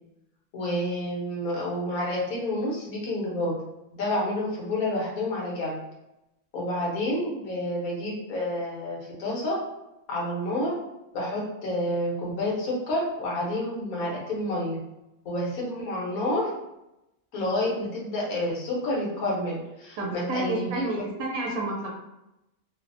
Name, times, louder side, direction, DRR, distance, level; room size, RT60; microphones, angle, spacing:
voice 1, 0.5-3.5 3.9-5.8 6.5-9.6 10.1-10.7 11.1-14.8 15.2-16.5 17.3-21.1, left 1 dB, 85° left, -4 dB, 1.4 m, -29 dB
voice 2, 20.0-21.9, right 2 dB, 85° right, -1 dB, 1.0 m, -30 dB
3.0 x 2.0 x 2.6 m, 0.91 s
omnidirectional pair, 1.5 m